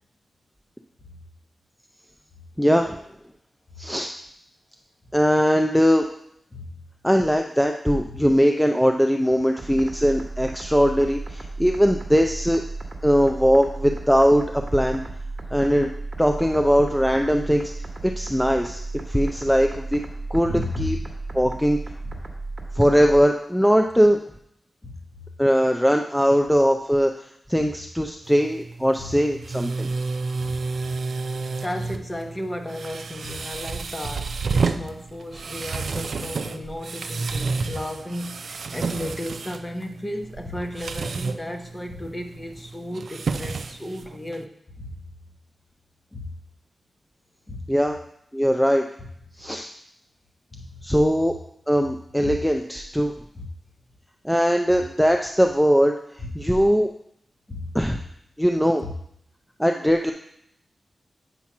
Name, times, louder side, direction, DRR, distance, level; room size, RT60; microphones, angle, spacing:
voice 1, 2.6-3.0 3.8-4.1 5.1-6.1 7.0-12.6 13.0-15.0 15.5-15.9 16.2-17.7 18.0-18.8 19.1-20.0 20.3-21.0 21.3-21.8 22.8-24.2 25.4-27.1 27.5-29.9 47.7-48.0 48.3-48.8 49.4-49.7 50.8-51.3 51.7-53.1 54.2-55.9 56.3-56.9 57.7-58.0 58.4-58.8 59.6-60.1, equal, ahead, 4 dB, 0.4 m, -20 dB
sound 1, 9.6-23.2, right 3 dB, 35° right, 1.2 m, -34 dB
voice 2, 20.4-21.1 22.0-22.1 24.8-24.9 29.0-29.1 30.4-30.6 31.6-44.5 44.8-45.0 46.1-46.3 47.5-47.7 50.5-50.7 52.2-52.4 53.4-53.5 56.2-56.3 57.5-57.7 58.8-58.9, left 1 dB, 20° left, 4 dB, 0.9 m, -34 dB
sound 2, 28.2-44.4, right 4 dB, 70° right, 0.4 m, -31 dB
8.4 x 2.9 x 5.8 m, 0.72 s
wide cardioid pair, 85°, 0 cm